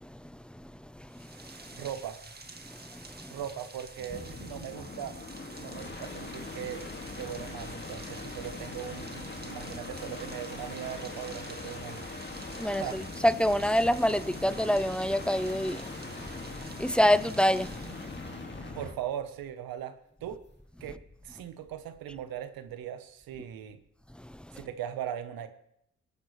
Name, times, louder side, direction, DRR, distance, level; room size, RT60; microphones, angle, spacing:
voice 1, 0.0-1.8 2.7-3.3 5.6-5.7 12.5-18.7 24.2-24.6, equal, 5° left, 0.8 m, -29 dB
Rain, 1.1-18.5, right 3 dB, 25° right, 1.9 m, -49 dB
voice 2, 1.8-2.2 3.3-5.2 5.6-6.8 7.2-12.1 12.7-13.0 18.8-20.0 20.2-20.4 20.8-23.8 24.5-25.5, right 10 dB, 80° right, 1.2 m, -39 dB
sound 1, 4.0-19.0 20.8-21.3, left 3 dB, 30° left, 2.2 m, -41 dB
21.5 x 9.3 x 3.3 m
hypercardioid pair, 45°, 35 cm